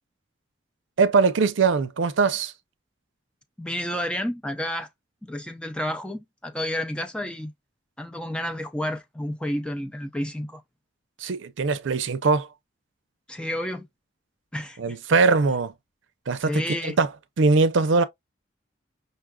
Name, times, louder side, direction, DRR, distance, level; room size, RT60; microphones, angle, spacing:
voice 1, 1.0-2.5 11.2-12.5 14.8-15.7 16.3-17.1 17.4-18.0, right 4 dB, 80° right, 0.5 m, -21 dB
voice 2, 3.6-4.9 5.2-7.5 8.0-10.6 13.3-13.9 14.5-15.0 16.5-17.0, left 1 dB, 5° left, 0.4 m, -30 dB
5.3 x 2.4 x 2.2 m
head